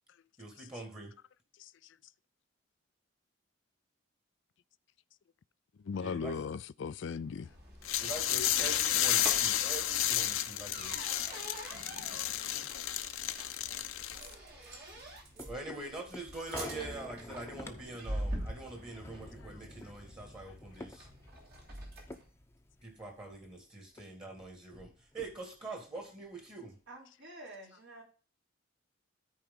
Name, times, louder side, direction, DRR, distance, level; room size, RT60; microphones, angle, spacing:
voice 1, 0.4-1.1 6.0-6.3 8.0-11.1 15.4-21.1 22.8-26.8, right 2 dB, 25° right, 2.0 m, -44 dB
voice 2, 1.6-2.0 5.8-7.5 11.9-12.5 19.8-19.9, left 5 dB, 65° left, 0.4 m, -39 dB
sound 1, 7.2-22.3, right 1 dB, 50° right, 2.9 m, -45 dB
sound 2, 7.8-14.3, left 12 dB, 85° left, 0.8 m, -32 dB
sound 3, 14.9-23.6 24.0-24.1 24.3-25.7 26.2-26.3, left 1 dB, 10° left, 0.8 m, -49 dB
voice 3, 26.9-28.0, right 1 dB, 65° right, 4.8 m, -49 dB
13.5 x 4.8 x 3.8 m
head